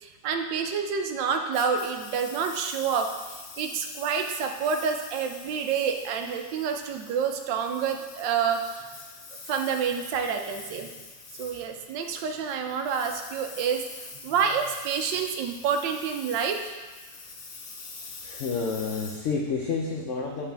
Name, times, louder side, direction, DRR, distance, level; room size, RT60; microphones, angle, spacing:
voice 1, 0.0-8.9 9.5-10.9 11.4-13.8 14.2-16.6, right 6 dB, 75° right, 5 dB, 1.3 m, -28 dB
Engine, 1.5-20.0, left 4 dB, 55° left, 1.0 m, -45 dB
voice 2, 18.2-20.5, left 4 dB, 80° left, 0 dB, 0.6 m, -29 dB
8.6 x 4.2 x 3.4 m, 1.3 s
omnidirectional pair, 2.1 m